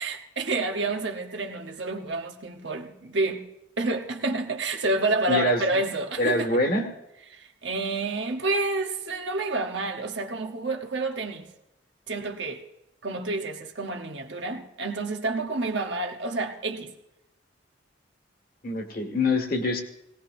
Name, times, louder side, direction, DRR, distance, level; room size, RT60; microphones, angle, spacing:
voice 1, 0.0-3.4 3.8-6.5 7.3-11.5 12.1-12.6 13.0-16.9, right 2 dB, 70° right, 1.1 m, -29 dB
voice 2, 5.3-5.8 6.2-6.9 18.6-19.8, left 2 dB, 50° left, 1.8 m, -25 dB
19.0 x 18.5 x 2.7 m
head